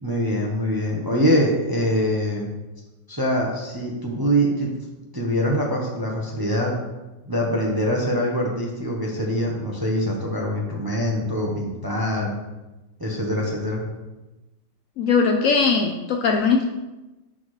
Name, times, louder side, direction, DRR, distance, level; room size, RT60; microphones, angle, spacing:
voice 1, 0.0-2.5 3.1-4.7 5.1-6.7 7.3-12.3 13.0-13.8, equal, 20° right, -2 dB, 0.6 m, -24 dB
voice 2, 15.0-16.7, left 5 dB, 70° left, 3 dB, 0.8 m, -20 dB
9.6 x 4.2 x 3.2 m, 1.1 s
omnidirectional pair, 1.7 m